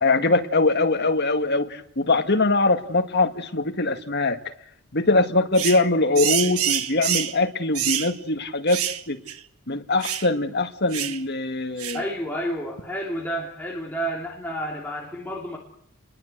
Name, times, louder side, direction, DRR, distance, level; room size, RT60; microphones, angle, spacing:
voice 1, 0.0-4.4 4.9-8.8 9.1-9.2 9.7-12.0, left 2 dB, 50° left, 7 dB, 2.0 m, -22 dB
sound 1, 5.5-5.8 6.1-7.4 7.7-8.1 8.7-9.0 9.3-9.4 10.0-10.3 10.9-11.2 11.8-12.0, right 10 dB, 80° right, 1.4 m, -26 dB
voice 2, 11.9-15.6, equal, 10° left, -2 dB, 3.1 m, -30 dB
29.5 x 21.5 x 8.1 m, 0.70 s
head